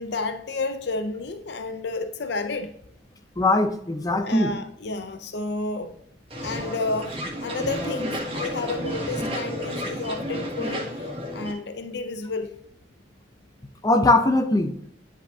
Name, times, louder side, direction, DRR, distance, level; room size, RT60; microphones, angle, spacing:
voice 1, 0.0-2.8 4.2-5.9 6.4-12.6, left 3 dB, 65° left, 0.6 m, -31 dB
voice 2, 3.4-4.5 13.8-14.7, left 2 dB, 20° left, 0.6 m, -20 dB
sound 1, 6.3-11.5, equal, 30° right, 1.6 m, -31 dB
10.0 x 5.1 x 2.8 m
head